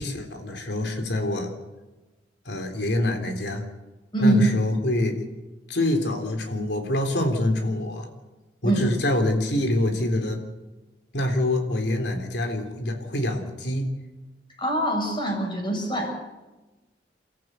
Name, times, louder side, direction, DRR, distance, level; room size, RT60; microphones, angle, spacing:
voice 1, 0.0-1.5 2.5-3.7 4.2-5.2 5.7-8.1 8.6-10.4 11.1-13.9, left 1 dB, 70° left, 5 dB, 3.6 m, -25 dB
voice 2, 14.6-16.1, right 1 dB, 25° left, 1 dB, 6.6 m, -23 dB
29.5 x 14.0 x 8.3 m, 1.1 s
head